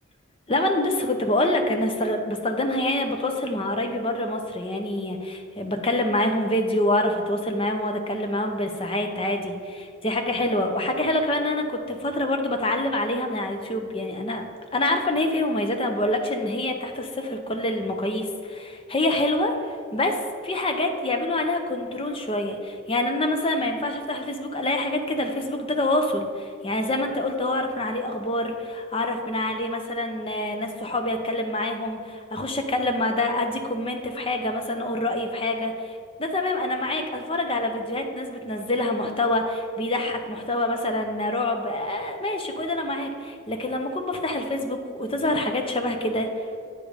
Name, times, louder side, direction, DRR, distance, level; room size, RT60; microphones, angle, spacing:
voice 1, 0.5-14.5 14.7-20.2 20.4-46.5, left 1 dB, 25° left, 5 dB, 0.7 m, -26 dB
8.7 x 5.1 x 5.0 m, 2.4 s
head